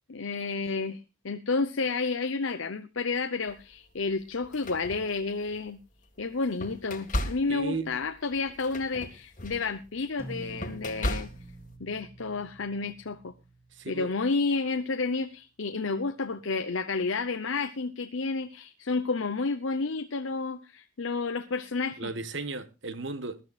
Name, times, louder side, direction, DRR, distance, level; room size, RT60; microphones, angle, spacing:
voice 1, 0.1-5.8 6.2-11.3 11.8-13.3 13.9-22.1, left 4 dB, 70° left, 0.8 m, -31 dB
sound 1, 3.5-3.7 4.3-5.7 6.2-11.7, left 1 dB, 35° left, 1.7 m, -36 dB
voice 2, 7.5-7.9 13.8-14.1 22.0-23.4, right 3 dB, 60° right, 1.3 m, -35 dB
sound 2, 10.2-14.8, right 1 dB, 15° right, 2.2 m, -47 dB
21.5 x 13.0 x 2.4 m
head